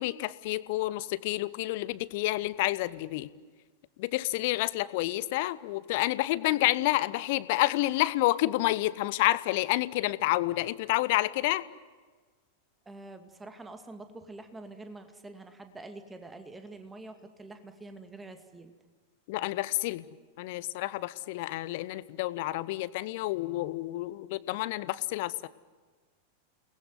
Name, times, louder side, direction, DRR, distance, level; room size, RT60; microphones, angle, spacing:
voice 1, 0.0-3.3 4.0-11.6 19.3-20.1 20.4-25.5, left 17 dB, 50° left, 18 dB, 0.9 m, -29 dB
voice 2, 12.9-18.7, right 2 dB, 10° right, 7 dB, 2.3 m, -46 dB
29.0 x 20.0 x 9.5 m, 1.4 s
figure-of-eight pair, 90°, 0 cm